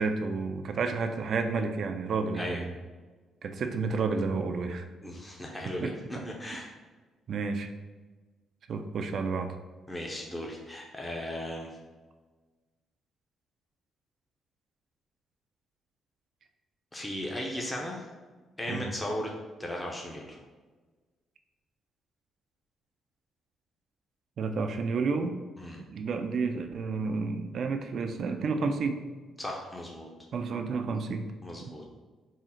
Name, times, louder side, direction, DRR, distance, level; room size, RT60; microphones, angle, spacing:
voice 1, 0.0-2.7 3.4-4.8 5.8-6.3 7.3-7.7 8.7-9.5 18.7-18.9 24.4-25.4 25.9-29.0 30.3-31.3, right 4 dB, 60° right, 6 dB, 0.3 m, -30 dB
voice 2, 5.0-6.7 9.9-11.7 16.9-18.1 18.6-19.3 19.6-20.4 25.6-25.8 29.4-30.1 31.4-31.8, left 1 dB, 10° left, -1 dB, 0.6 m, -36 dB
3.7 x 2.0 x 4.2 m, 1.3 s
cardioid pair, 90°, 0 cm